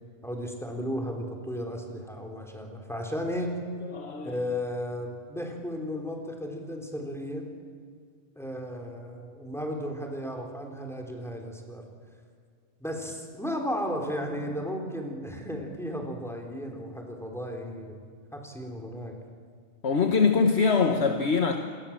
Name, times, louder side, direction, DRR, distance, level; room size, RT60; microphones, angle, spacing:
voice 1, 0.2-3.6 4.2-7.5 8.4-11.9 12.8-18.0 18.3-19.2, equal, ahead, 2 dB, 3.9 m, -34 dB
voice 2, 3.8-4.4 19.8-21.6, left 5 dB, 60° left, 5 dB, 1.5 m, -23 dB
28.0 x 21.5 x 7.5 m, 2.1 s
omnidirectional pair, 1.3 m